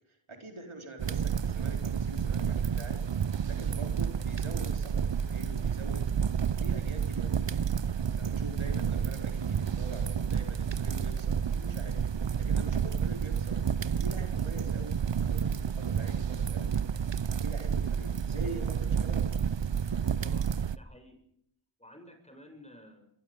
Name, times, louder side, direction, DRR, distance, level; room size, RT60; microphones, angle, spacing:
voice 1, 0.1-3.1 3.5-6.1 6.6-7.7 8.2-12.0 12.4-13.6 13.9-15.0 15.3-16.8 17.3-19.3, right 2 dB, 80° right, 4 dB, 4.5 m, -44 dB
sound 1, 1.0-20.8, right 7 dB, 65° right, 0.8 m, -30 dB
voice 2, 20.7-21.2 21.8-23.1, left 1 dB, 15° left, 5 dB, 7.4 m, -52 dB
23.5 x 22.5 x 5.3 m, 0.70 s
wide cardioid pair, 50°, 48 cm